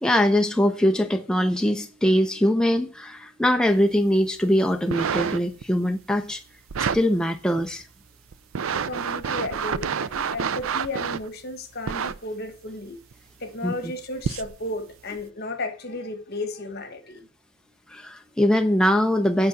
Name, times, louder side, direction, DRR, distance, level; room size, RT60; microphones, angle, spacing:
voice 1, 0.0-6.4 6.8-7.9 13.6-13.7 17.9-19.5, equal, 5° left, 0.5 m, -22 dB
sound 1, 4.7-5.6 6.7-7.0 7.6-7.7 8.3-11.3 11.9-12.2 13.1-13.2 14.2-14.5 15.2-15.3, right 6 dB, 85° right, 0.5 m, -28 dB
voice 2, 8.7-13.0 13.4-17.3, left 2 dB, 50° left, 1.4 m, -34 dB
8.7 x 5.7 x 7.1 m
head